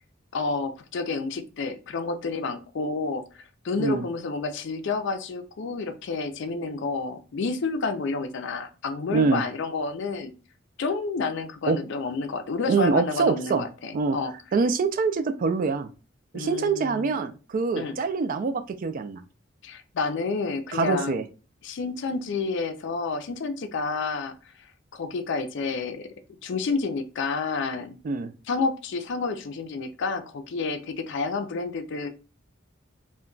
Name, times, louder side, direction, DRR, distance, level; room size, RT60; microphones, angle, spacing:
voice 1, 0.3-3.2 3.6-10.3 10.8-14.3 16.3-17.1 17.7-18.0 19.6-21.2 21.6-24.3 24.9-26.1 26.4-28.0 28.5-32.1, left 4 dB, 60° left, 8 dB, 0.4 m, -29 dB
voice 2, 9.1-9.4 11.7-11.8 12.7-13.6 13.9-14.2 14.5-15.9 16.3-19.2 20.7-21.2 28.0-28.3, right 4 dB, 45° right, 10 dB, 0.3 m, -25 dB
2.2 x 2.2 x 3.8 m, 0.34 s
head